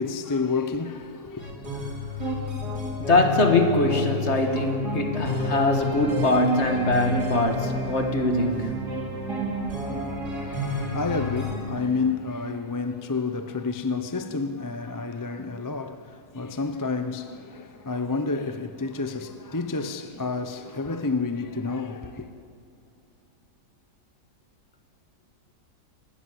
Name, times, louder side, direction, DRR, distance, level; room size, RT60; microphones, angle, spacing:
voice 1, 0.0-1.5 10.4-22.3, left 4 dB, 20° left, 0.5 m, -30 dB
sound 1, 1.4-11.5, left 1 dB, 80° right, 4.1 m, -31 dB
voice 2, 3.0-8.7, left 2 dB, 45° left, 2.1 m, -22 dB
25.5 x 20.0 x 7.8 m
omnidirectional pair, 1.7 m